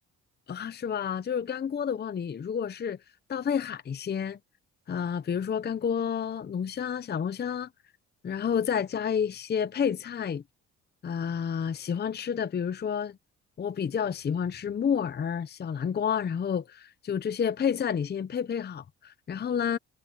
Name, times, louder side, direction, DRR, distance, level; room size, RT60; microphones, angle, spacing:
voice 1, 0.5-3.0 3.3-4.4 4.9-7.7 8.2-10.4 11.0-13.2 13.6-19.8, left 7 dB, 35° left, 0.7 m, -30 dB
cardioid pair, 90°, 30 cm